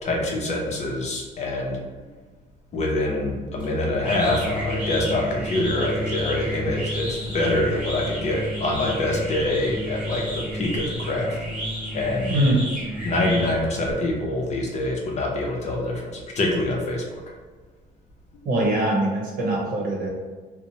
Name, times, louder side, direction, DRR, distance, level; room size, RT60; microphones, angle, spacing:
voice 1, 0.0-1.8 2.7-11.4 11.9-12.3 13.0-17.2, left 2 dB, 40° left, -1 dB, 0.6 m, -25 dB
sound 1, 3.6-13.9, equal, 5° right, 1.0 m, -31 dB
voice 2, 18.4-20.1, right 1 dB, 60° right, -2 dB, 0.9 m, -22 dB
2.8 x 2.1 x 2.8 m, 1.4 s
cardioid pair, 110°, 17 cm